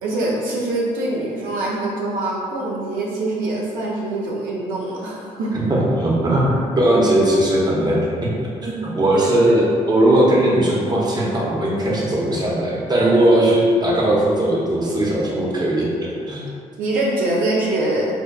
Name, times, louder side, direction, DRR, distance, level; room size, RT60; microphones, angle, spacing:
voice 1, 0.0-5.5 9.1-9.6 16.8-18.1, right 2 dB, 85° right, -4 dB, 0.5 m, -24 dB
voice 2, 5.5-8.3 8.6-16.4, right 1 dB, 30° right, -4 dB, 0.8 m, -18 dB
5.0 x 2.2 x 2.2 m, 2.2 s
cardioid pair, 75°, 14 cm